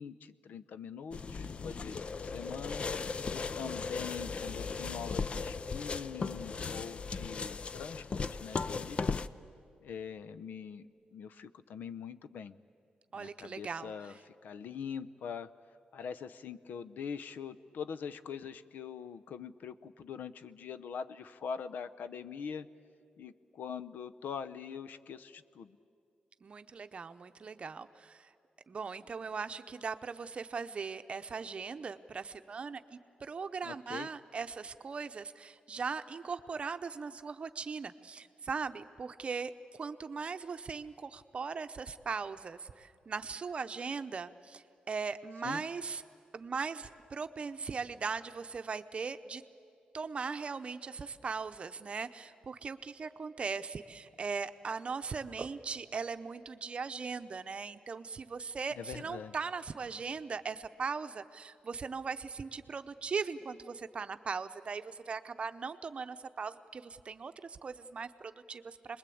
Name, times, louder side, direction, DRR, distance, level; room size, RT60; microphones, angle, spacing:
voice 1, 0.0-9.0 9.8-12.6 13.1-14.1 14.4-15.5 15.9-22.7 23.2-25.8 33.6-34.1 45.4-45.6 58.7-59.3, left 7 dB, 85° left, 14 dB, 0.7 m, -43 dB
sound 1, 1.1-9.3, left 4 dB, 40° left, 0.5 m, -37 dB
voice 2, 13.1-14.2 26.4-28.3 28.7-39.5 39.8-46.0 46.3-49.4 49.9-69.0, right 5 dB, 40° right, 9 dB, 0.8 m, -39 dB
26.5 x 21.0 x 8.6 m, 2.5 s
wide cardioid pair, 140°, 3 cm